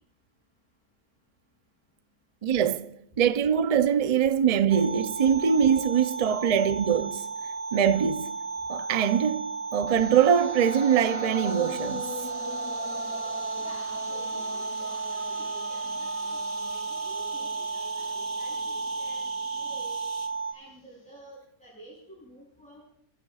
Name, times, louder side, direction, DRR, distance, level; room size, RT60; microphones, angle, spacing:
voice 1, 2.4-7.3 7.7-8.4 8.7-12.1, right 8 dB, 85° right, 0.3 m, -23 dB
sound 1, 4.7-20.5, right 4 dB, 25° right, 1.2 m, -34 dB
sound 2, 9.9-19.9, left 2 dB, 20° left, 0.6 m, -40 dB
sound 3, 11.5-20.3, right 2 dB, 40° right, 1.9 m, -46 dB
voice 2, 13.6-19.3 19.6-20.0 20.5-22.8, right 1 dB, 5° left, 5.9 m, -50 dB
30.0 x 15.5 x 2.4 m
omnidirectional pair, 1.6 m